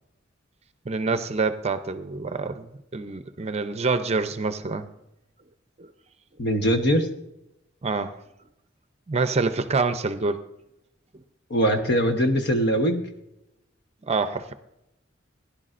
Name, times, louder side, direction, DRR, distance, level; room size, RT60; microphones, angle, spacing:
voice 1, 0.9-4.9 5.8-5.9 7.8-8.1 9.1-10.4 14.1-14.5, right 4 dB, 35° right, 10 dB, 0.6 m, -26 dB
voice 2, 6.4-7.1 11.5-13.0, equal, 60° left, 6 dB, 1.2 m, -21 dB
16.5 x 10.5 x 2.5 m, 0.86 s
head